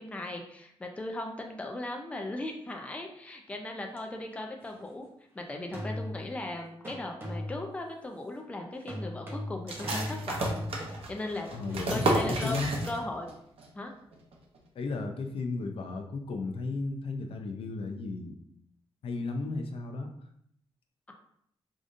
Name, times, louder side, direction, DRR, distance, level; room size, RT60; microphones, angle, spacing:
voice 1, 0.0-5.1 5.3-12.6 12.9-13.3 13.7-13.9, left 1 dB, 15° left, 2 dB, 0.4 m, -38 dB
sound 1, 4.0-4.1 5.7-6.4 6.8-7.8 8.9-12.2, left 1 dB, 25° right, 0.8 m, -38 dB
sound 2, 9.7-13.3 13.6-13.7 14.1-14.6, right 2 dB, 75° right, 0.7 m, -32 dB
voice 2, 11.5-12.7 14.8-18.4 19.0-20.1, left 3 dB, 70° left, 4 dB, 0.5 m, -34 dB
4.9 x 2.6 x 2.5 m, 0.69 s
wide cardioid pair, 155°, 10 cm